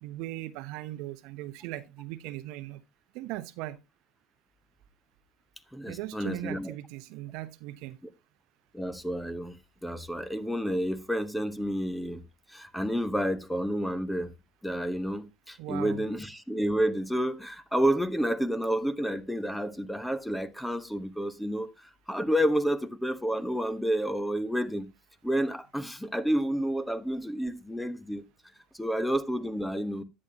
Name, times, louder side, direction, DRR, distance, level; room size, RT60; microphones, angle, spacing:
voice 1, 0.0-2.8 3.1-3.8 5.9-8.0 15.6-16.1, right 16 dB, 70° right, 0.7 m, -38 dB
voice 2, 5.7-6.7 8.7-9.6 9.8-12.2 12.5-14.3 14.6-21.7 22.1-24.9 25.2-28.2 28.7-30.0, equal, 5° left, 1.0 m, -30 dB
10.5 x 8.6 x 2.8 m
supercardioid pair, 90°, 0 cm